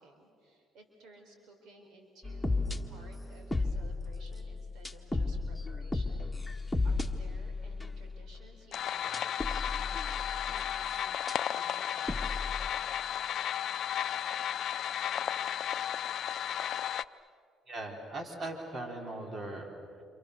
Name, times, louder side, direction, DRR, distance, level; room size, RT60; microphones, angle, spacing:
voice 1, 0.0-10.3 10.7-12.5, right 2 dB, 75° right, 4 dB, 4.2 m, -57 dB
sound 1, 2.2-8.4 9.1-10.8 11.3-11.4 12.1-12.7, left 3 dB, 10° left, 1.9 m, -34 dB
sound 2, 8.7-17.0, left 10 dB, 60° left, 0.6 m, -34 dB
voice 2, 17.7-20.0, right 2 dB, 45° right, 2 dB, 4.7 m, -40 dB
29.0 x 28.5 x 7.0 m, 2.4 s
supercardioid pair, 80°, 0 cm